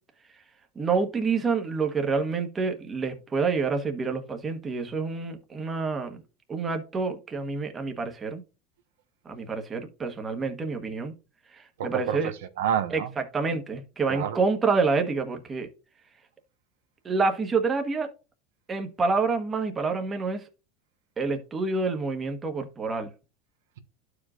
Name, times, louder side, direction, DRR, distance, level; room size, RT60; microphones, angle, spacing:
voice 1, 0.7-6.2 6.5-8.4 9.2-11.1 11.5-12.3 12.9-15.7 17.0-18.1 18.7-20.4 21.2-23.1, right 4 dB, 20° right, 1.3 m, -28 dB
voice 2, 11.8-13.1 14.1-14.4, right 9 dB, 85° right, 1.1 m, -29 dB
11.5 x 5.0 x 2.5 m
supercardioid pair, 125°, 0 cm